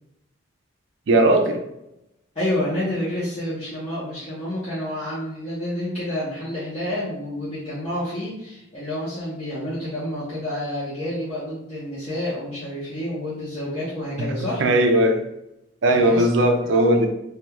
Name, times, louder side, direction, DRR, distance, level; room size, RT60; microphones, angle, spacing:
voice 1, 1.1-1.6 14.6-15.2 15.8-17.1, right 1 dB, 65° right, 4 dB, 0.4 m, -18 dB
voice 2, 2.3-14.6 15.9-16.5, left 1 dB, 30° left, -11 dB, 0.6 m, -29 dB
2.3 x 2.3 x 2.9 m, 0.84 s
head